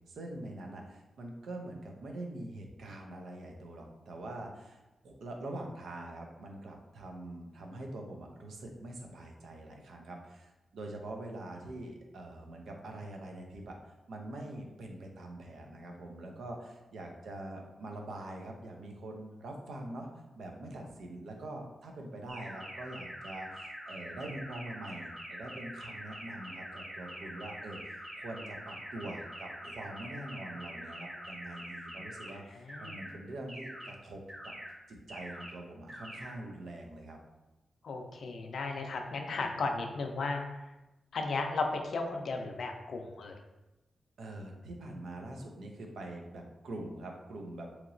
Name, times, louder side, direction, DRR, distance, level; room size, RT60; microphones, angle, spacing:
voice 1, 0.0-20.1 20.3-34.5 34.9-37.2 44.2-47.8, right 1 dB, 85° right, 2 dB, 0.5 m, -44 dB
sound 1, 22.3-32.3 32.7-33.1 33.5-33.9 34.3-34.7 35.1-35.5 35.9-36.3, equal, 50° right, 1.1 m, -45 dB
voice 2, 37.8-40.4 41.1-43.3, left 3 dB, 65° left, 4 dB, 0.4 m, -35 dB
2.9 x 2.8 x 2.5 m, 0.99 s
wide cardioid pair, 155°, 0 cm